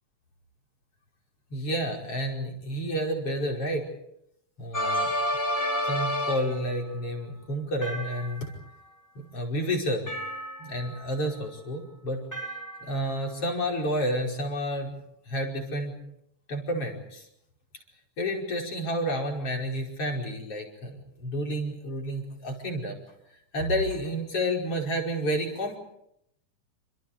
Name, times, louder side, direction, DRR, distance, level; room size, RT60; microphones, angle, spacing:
voice 1, 1.5-3.9 4.6-5.1 5.9-8.5 9.2-10.2 10.6-12.2 12.9-14.9 15.3-15.9 16.5-17.3 18.2-23.0 23.5-25.8, equal, 45° left, 1 dB, 6.1 m, -30 dB
sound 1, 4.7-6.7 7.8-8.7 10.1-11.0 12.3-13.2, equal, 5° left, 4.1 m, -30 dB
28.5 x 27.0 x 5.2 m, 0.77 s
omnidirectional pair, 3.6 m